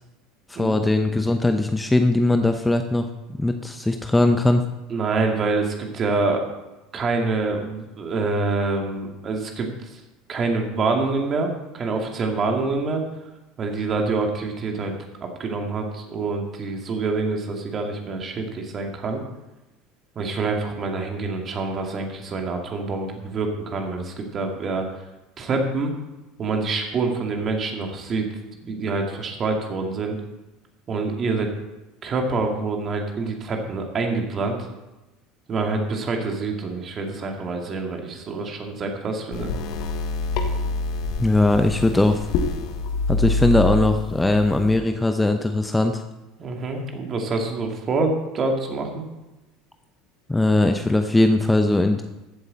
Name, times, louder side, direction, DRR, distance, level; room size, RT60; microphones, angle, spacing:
voice 1, 0.5-3.1 3.4-4.6 41.2-42.3 43.1-46.0 50.3-52.0, left 2 dB, 10° left, 6 dB, 0.8 m, -20 dB
voice 2, 4.9-6.4 6.9-9.7 10.3-13.0 13.6-14.9 15.2-19.2 20.2-24.9 25.4-25.9 26.4-28.3 28.6-30.2 30.9-31.5 32.0-34.6 35.5-39.5 46.4-49.0, right 3 dB, 35° right, 2 dB, 2.4 m, -26 dB
sound 1, 39.3-44.8, left 3 dB, 60° left, 1.4 m, -26 dB
15.0 x 8.0 x 4.2 m, 1.0 s
hypercardioid pair, 70°, 0 cm